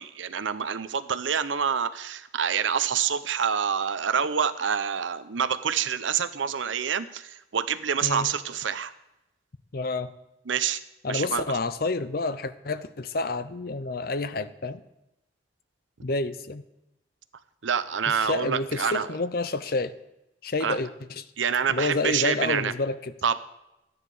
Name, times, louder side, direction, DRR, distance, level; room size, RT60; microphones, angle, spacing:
voice 1, 0.0-8.9 10.5-10.8 11.1-11.4 17.6-19.1 20.6-20.8 21.4-22.7 23.2-23.4, right 7 dB, 90° right, 12 dB, 0.7 m, -27 dB
voice 2, 9.7-10.1 11.0-14.8 16.0-16.6 18.1-19.9 20.4-21.2 21.7-23.1, left 3 dB, 55° left, 13 dB, 0.7 m, -29 dB
12.5 x 9.6 x 4.9 m, 0.90 s
head